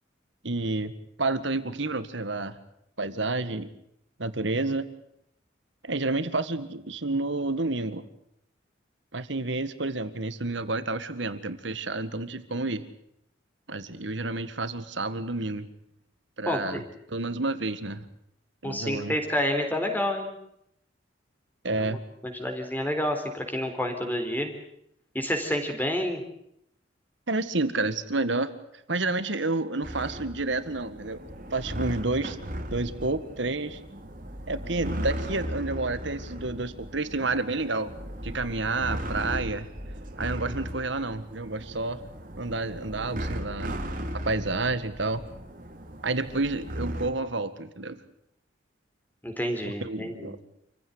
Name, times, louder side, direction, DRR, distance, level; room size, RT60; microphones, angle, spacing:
voice 1, 0.4-0.9 1.2-2.6 3.0-3.7 4.2-4.9 5.8-8.1 9.1-12.8 13.7-15.7 16.4-16.8 17.1-18.1 18.6-19.1 21.6-22.0 27.3-28.5 28.9-31.2 31.5-32.4 32.7-33.8 34.5-37.9 38.2-39.7 40.2-42.0 42.4-43.7 44.3-45.2 46.0-48.0 49.6-50.4, right 2 dB, 70° right, 12 dB, 1.9 m, -29 dB
voice 2, 16.5-16.8 18.6-20.3 21.8-22.0 22.2-24.5 25.1-26.2 49.2-50.4, left 1 dB, 10° left, 4 dB, 4.0 m, -29 dB
sound 1, 29.8-47.1, equal, 45° right, 3.0 m, -37 dB
28.0 x 16.0 x 9.7 m, 0.75 s
head